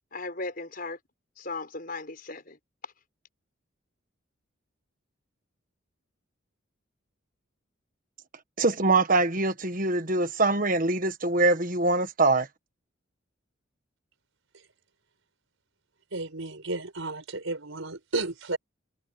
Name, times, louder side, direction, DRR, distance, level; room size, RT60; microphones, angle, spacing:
voice 1, 0.1-1.0 1.4-2.6, left 3 dB, 45° left, 5.7 m, -36 dB
voice 2, 8.6-12.5, right 2 dB, 45° right, 1.5 m, -23 dB
voice 3, 16.1-18.6, right 2 dB, 90° right, 4.9 m, -33 dB
head